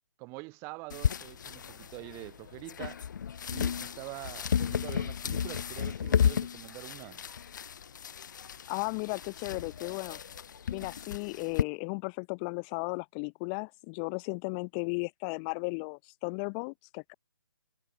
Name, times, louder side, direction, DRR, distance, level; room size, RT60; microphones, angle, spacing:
voice 1, 0.2-3.0 3.5-7.2, right 28 dB, 20° right, 6.1 m, -45 dB
sound 1, 0.9-11.6, left 8 dB, 50° left, 2.4 m, -33 dB
voice 2, 8.7-10.2 10.7-17.1, left 38 dB, 25° left, 4.4 m, -35 dB
hypercardioid pair, 155°, 12 cm